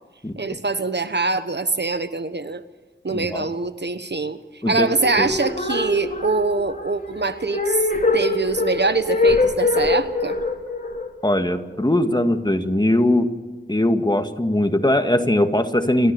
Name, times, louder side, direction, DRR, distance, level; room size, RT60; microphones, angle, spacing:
voice 1, 0.4-2.6 3.0-10.4, right 3 dB, 55° right, 11 dB, 1.1 m, -24 dB
voice 2, 3.1-3.5 4.6-4.9 5.2-5.3 11.2-13.3 13.7-16.1, left 1 dB, 20° left, 6 dB, 1.9 m, -20 dB
sound 1, 4.9-12.1, left 3 dB, 40° left, 3.7 m, -23 dB
29.0 x 13.5 x 6.9 m, 1.3 s
wide cardioid pair, 55°, 21 cm